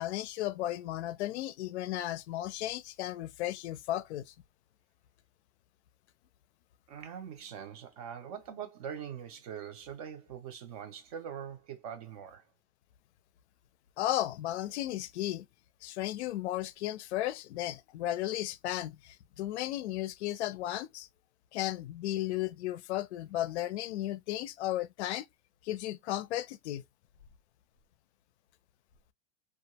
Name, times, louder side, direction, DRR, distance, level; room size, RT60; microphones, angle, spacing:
voice 1, 0.0-4.3 14.0-15.5 15.8-21.1 21.5-25.3 25.6-26.8, left 14 dB, 75° left, 0.5 m, -34 dB
voice 2, 6.9-12.5, right 8 dB, 35° right, 0.4 m, -43 dB
2.3 x 2.2 x 2.8 m
supercardioid pair, 170°, 33 cm